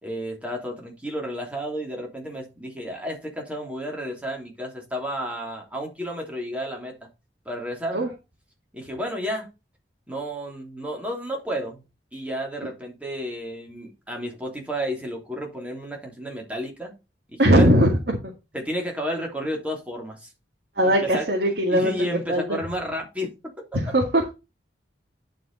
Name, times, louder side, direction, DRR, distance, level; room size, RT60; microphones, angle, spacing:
voice 1, 0.0-7.1 7.4-8.1 8.7-9.5 10.1-11.8 12.1-16.9 17.3-17.7 18.5-20.3 20.8-21.3 21.7-23.3, equal, 5° right, 3.1 m, -32 dB
voice 2, 17.4-18.2 20.8-21.9 22.3-22.6 23.8-24.3, equal, 60° right, 2.2 m, -19 dB
11.0 x 5.2 x 4.1 m
head